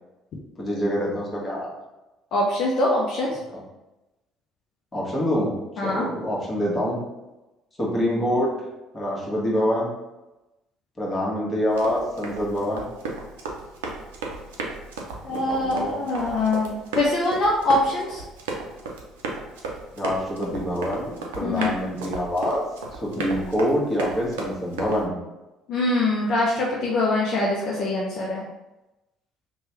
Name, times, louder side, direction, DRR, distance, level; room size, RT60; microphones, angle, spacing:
voice 1, 0.6-1.7 4.9-5.5 5.8-7.0 7.8-8.5 8.9-9.9 11.0-12.9 15.3-15.9 19.9-22.6 23.0-25.2, equal, 25° left, -5 dB, 1.2 m, -26 dB
voice 2, 2.3-3.3 5.8-6.0 15.2-18.2 21.4-21.7 25.7-28.4, left 2 dB, 55° left, -4 dB, 0.5 m, -23 dB
Run, 11.7-25.0, right 3 dB, 80° right, 0.5 m, -34 dB
2.9 x 2.2 x 3.0 m, 1.0 s
hypercardioid pair, 55°, 0 cm